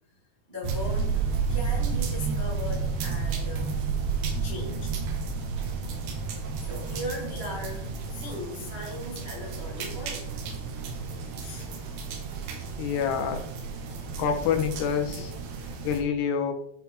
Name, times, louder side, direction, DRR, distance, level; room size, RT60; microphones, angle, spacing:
voice 1, 0.5-1.2 1.5-3.8 4.4-5.0 6.0-10.4 11.4-11.7, left 1 dB, 45° right, 0.7 m, -38 dB
sound 1, 0.6-16.0, right 5 dB, 85° right, 3.5 m, -31 dB
voice 2, 12.8-13.4 14.2-15.3 15.8-16.5, left 7 dB, 85° left, 3.1 m, -27 dB
13.5 x 4.5 x 3.5 m
omnidirectional pair, 4.7 m